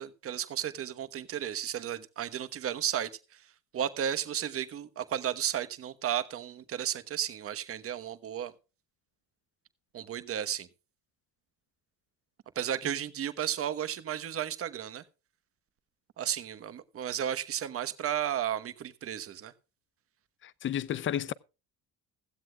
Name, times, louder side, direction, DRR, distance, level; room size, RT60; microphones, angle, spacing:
voice 1, 0.0-3.4 3.7-8.5 9.9-10.7 12.5-15.0 16.2-19.5, right 10 dB, 40° right, 1.2 m, -33 dB
voice 2, 20.4-21.3, left 10 dB, 35° left, 0.5 m, -32 dB
16.0 x 15.0 x 2.3 m
cardioid pair, 160°, 36 cm